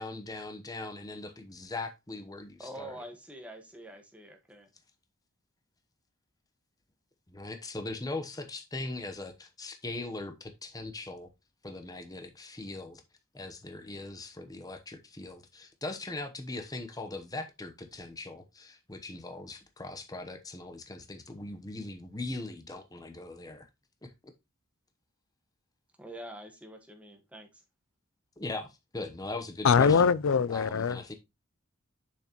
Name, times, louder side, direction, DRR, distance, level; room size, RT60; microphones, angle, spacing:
voice 1, 0.0-3.0 7.3-11.3 11.6-13.0 13.3-23.7 24.0-24.1 28.4-30.1 30.5-31.1, left 2 dB, 15° left, 0.9 m, -40 dB
voice 2, 2.6-4.7 26.0-27.6, right 1 dB, 5° right, 1.4 m, -46 dB
voice 3, 29.6-31.0, left 6 dB, 65° left, 0.4 m, -23 dB
6.9 x 6.2 x 2.9 m
head